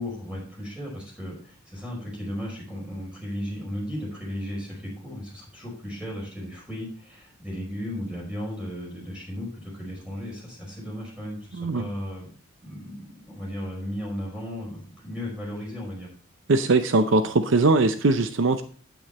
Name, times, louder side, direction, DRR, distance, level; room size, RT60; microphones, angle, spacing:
voice 1, 0.0-12.3 12.6-16.1, equal, 5° right, -3 dB, 5.1 m, -35 dB
voice 2, 11.6-11.9 16.5-18.6, right 3 dB, 60° right, 10 dB, 0.6 m, -21 dB
9.2 x 8.6 x 4.2 m, 0.42 s
head